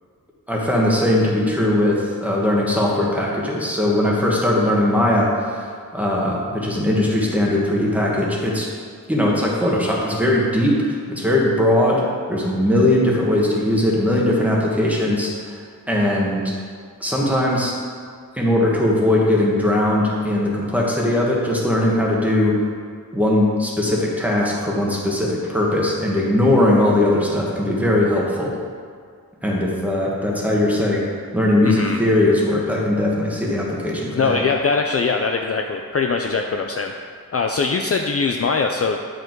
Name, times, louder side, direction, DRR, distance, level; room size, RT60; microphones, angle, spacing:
voice 1, 0.5-5.7 5.9-8.7 9.1-10.8 11.1-12.0 12.3-15.5 15.9-16.5 17.0-17.7 18.4-22.5 23.1-28.6 29.4-31.0 31.3-34.4, left 1 dB, 5° right, -3 dB, 1.4 m, -19 dB
voice 2, 31.6-32.0 34.1-36.9 37.3-39.0, left 4 dB, 40° left, 4 dB, 0.4 m, -22 dB
9.8 x 5.1 x 4.6 m, 2.1 s
wide cardioid pair, 130°, 36 cm